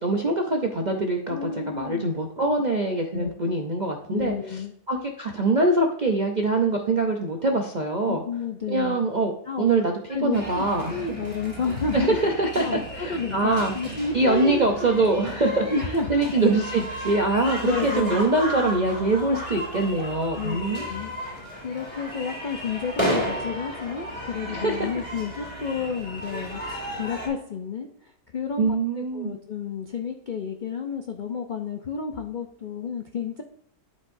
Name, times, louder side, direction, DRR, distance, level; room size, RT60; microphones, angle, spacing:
voice 1, 0.0-4.3 4.9-8.2 8.7-9.3 9.6-11.0 11.9-12.7 12.9-13.7 14.1-15.7 16.1-20.9 24.5-24.9 28.6-29.3, right 2 dB, 60° right, 2 dB, 0.4 m, -23 dB
voice 2, 1.3-2.0 3.1-3.3 4.1-4.7 8.1-9.0 9.5-9.7 10.1-12.2 12.6-14.7 15.6-16.1 17.0-17.2 17.6-18.2 20.4-26.6 26.9-33.4, left 5 dB, 85° left, 4 dB, 0.4 m, -31 dB
sound 1, 10.3-27.3, equal, 5° left, 3.1 m, -34 dB
11.5 x 5.2 x 2.6 m, 0.72 s
omnidirectional pair, 1.8 m